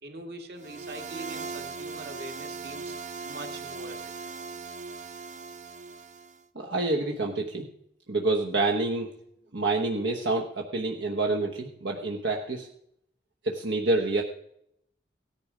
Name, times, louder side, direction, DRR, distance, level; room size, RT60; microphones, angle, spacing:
voice 1, 0.0-3.0 3.2-4.1, right 2 dB, 55° right, 4 dB, 2.0 m, -42 dB
sound 1, 0.6-6.4, right 4 dB, 40° right, 0.5 m, -39 dB
voice 2, 6.5-7.7 8.1-9.1 9.5-12.7 13.4-14.2, right 2 dB, 75° right, 2 dB, 1.1 m, -27 dB
17.0 x 10.5 x 5.0 m, 0.75 s
head